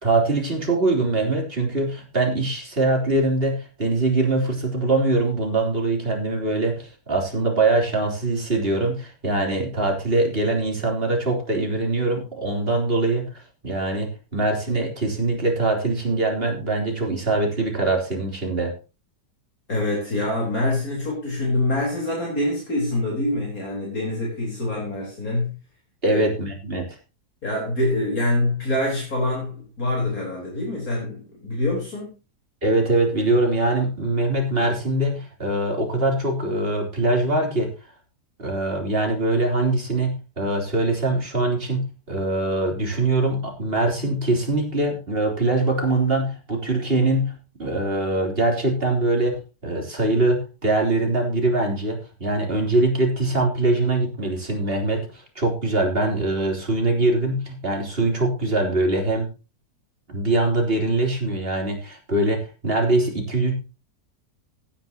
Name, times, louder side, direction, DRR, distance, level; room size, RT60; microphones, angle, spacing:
voice 1, 0.0-13.2 13.6-18.7 26.0-26.9 32.6-37.7 38.4-47.3 47.6-59.3 60.1-63.6, right 2 dB, 35° right, 3.8 m, -23 dB
voice 2, 19.7-25.6 26.1-26.2 27.4-32.1, left 1 dB, 55° left, 4.7 m, -25 dB
16.5 x 10.0 x 2.9 m
omnidirectional pair, 1.8 m